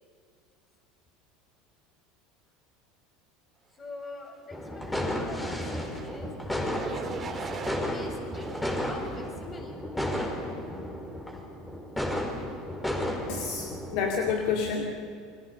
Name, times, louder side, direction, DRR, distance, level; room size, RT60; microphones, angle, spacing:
voice 1, 3.7-8.5 8.8-9.8, left 2 dB, 25° left, 2 dB, 6.7 m, -45 dB
sound 1, 4.5-14.3, left 1 dB, 10° left, 4.6 m, -33 dB
sound 2, 5.8-6.2 6.7-7.8 8.3-9.4 10.0-10.3, right 5 dB, 30° right, 3.3 m, -40 dB
voice 2, 13.3-15.1, left 6 dB, 60° left, 3 dB, 2.3 m, -29 dB
29.0 x 23.0 x 7.0 m, 2.3 s
hypercardioid pair, 75°, 0 cm